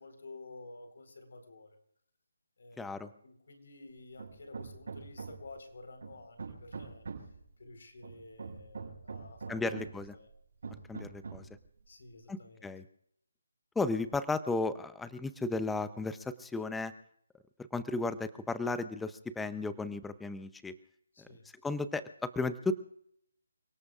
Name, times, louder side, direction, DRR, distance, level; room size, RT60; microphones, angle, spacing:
voice 1, 0.0-1.8 2.6-7.3 7.6-9.8 10.1-10.3 11.9-12.7 21.1-21.5, left 2 dB, 65° left, 6 dB, 4.2 m, -51 dB
voice 2, 2.8-3.1 9.5-10.1 10.9-11.5 12.3-12.8 13.8-16.9 17.7-20.8 21.2-21.3 21.6-22.7, left 3 dB, 5° left, 13 dB, 0.6 m, -34 dB
Hammer, 4.2-5.6 6.0-7.4 8.0-10.1 10.6-11.6, right 4 dB, 65° right, 6.5 m, -44 dB
30.0 x 18.0 x 2.5 m, 0.71 s
hypercardioid pair, 165°, 0 cm